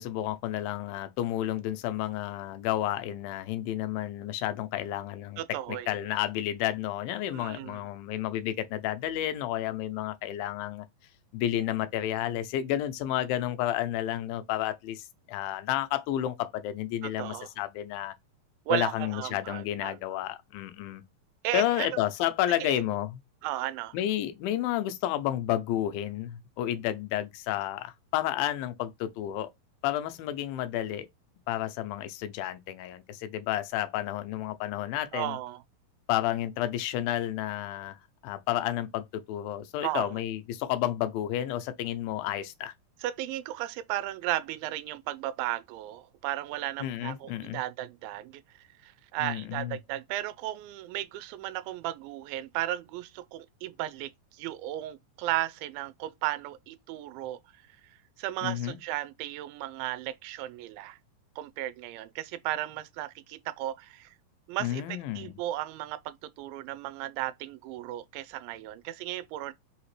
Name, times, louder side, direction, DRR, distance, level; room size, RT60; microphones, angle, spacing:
voice 1, 0.0-5.4 5.7-10.9 11.3-18.1 18.7-21.0 21.5-23.2 23.9-29.5 29.8-31.1 31.5-35.4 36.1-38.0 38.2-42.7 46.8-47.6 49.2-49.8 58.4-58.8 64.6-65.4, left 13 dB, 85° left, 2.4 m, -31 dB
voice 2, 5.4-5.9 7.3-7.8 17.2-17.5 18.7-20.0 21.4-21.9 22.6-22.8 23.4-24.0 35.1-35.6 39.8-40.2 43.0-48.3 48.8-57.4 58.2-61.0 61.4-64.1 64.5-69.5, right 14 dB, 85° right, 2.3 m, -35 dB
5.6 x 2.8 x 3.1 m
omnidirectional pair, 4.1 m